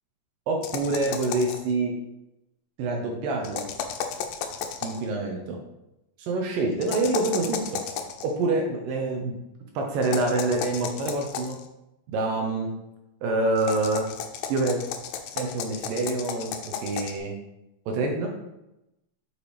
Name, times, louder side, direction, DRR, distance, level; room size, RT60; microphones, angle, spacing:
voice 1, 0.5-2.0 2.8-3.7 4.8-5.6 6.2-7.8 8.2-9.3 9.8-11.6 12.1-12.7 13.2-14.1 14.5-14.8 15.4-16.5 16.8-17.3 17.9-18.3, right 2 dB, 75° right, 2 dB, 2.4 m, -26 dB
sound 1, 0.6-1.7 3.4-5.0 6.8-8.2 10.0-11.6 13.6-17.2, left 8 dB, 85° left, 1.8 m, -34 dB
7.8 x 4.8 x 3.3 m, 0.90 s
omnidirectional pair, 4.4 m